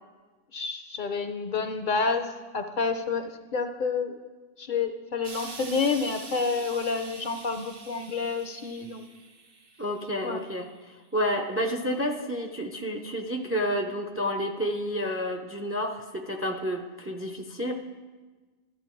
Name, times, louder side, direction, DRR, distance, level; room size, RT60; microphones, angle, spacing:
voice 1, 0.5-4.2 4.6-9.1 10.2-10.4, left 4 dB, 55° left, 7 dB, 0.7 m, -29 dB
Explosion, 5.2-10.5 11.4-11.5, right 3 dB, 65° right, 1.2 m, -45 dB
voice 2, 9.8-17.7, equal, 15° right, 4 dB, 0.5 m, -30 dB
12.5 x 7.7 x 4.5 m, 1.3 s
omnidirectional pair, 1.1 m